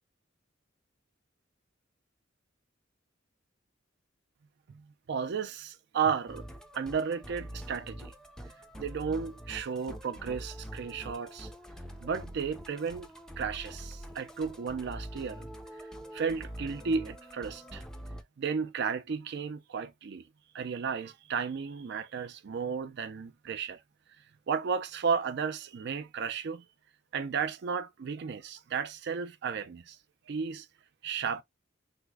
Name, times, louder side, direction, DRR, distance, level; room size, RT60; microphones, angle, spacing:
voice 1, 4.7-6.5 6.7-8.1 8.8-11.5 12.0-13.1 13.4-15.5 16.1-17.8 18.4-20.2 20.5-23.8 24.5-26.6 27.1-30.0 30.3-30.7 31.0-31.4, right 6 dB, 60° right, 0.4 m, -33 dB
Musical instrument, 6.3-18.2, equal, 5° left, 0.4 m, -45 dB
3.5 x 2.0 x 3.4 m
head